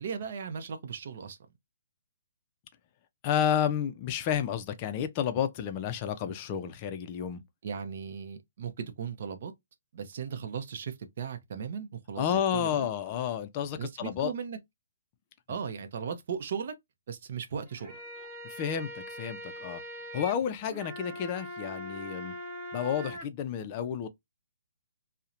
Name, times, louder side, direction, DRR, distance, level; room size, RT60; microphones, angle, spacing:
voice 1, 0.0-1.4 7.6-9.5 9.9-12.9 13.8-14.6 15.5-16.7 17.1-18.0, right 7 dB, 55° right, 0.6 m, -37 dB
voice 2, 3.2-7.4 12.2-14.3 18.4-19.8 20.1-22.3 22.7-24.1, left 9 dB, 30° left, 0.4 m, -31 dB
sound 1, 17.7-23.2, equal, 20° right, 0.8 m, -42 dB
2.7 x 2.1 x 2.4 m
hypercardioid pair, 155°, 0 cm